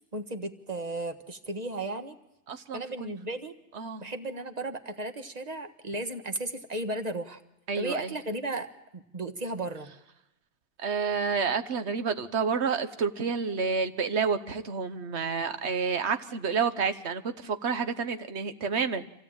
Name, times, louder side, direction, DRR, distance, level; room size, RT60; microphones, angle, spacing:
voice 1, 0.1-2.1 2.7-3.6 4.0-7.4 7.7-9.9, right 2 dB, 35° right, 7 dB, 1.5 m, -35 dB
voice 2, 2.5-3.1 3.7-4.0 7.7-8.1 10.8-19.1, right 5 dB, 70° right, 10 dB, 1.4 m, -29 dB
26.0 x 16.5 x 8.9 m, 0.93 s
omnidirectional pair, 1.2 m